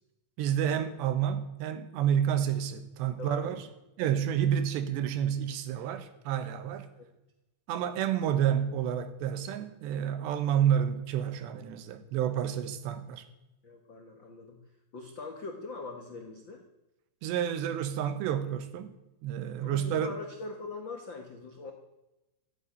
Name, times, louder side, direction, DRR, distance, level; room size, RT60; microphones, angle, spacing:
voice 1, 0.4-3.6 4.0-6.9 7.7-13.2 17.2-18.9 19.2-20.1, right 9 dB, 80° right, 3.4 m, -29 dB
voice 2, 3.2-3.6 7.0-7.1 13.6-14.6 14.9-16.7 19.6-21.7, left 3 dB, 85° left, 1.0 m, -42 dB
13.5 x 9.7 x 9.9 m
omnidirectional pair, 4.9 m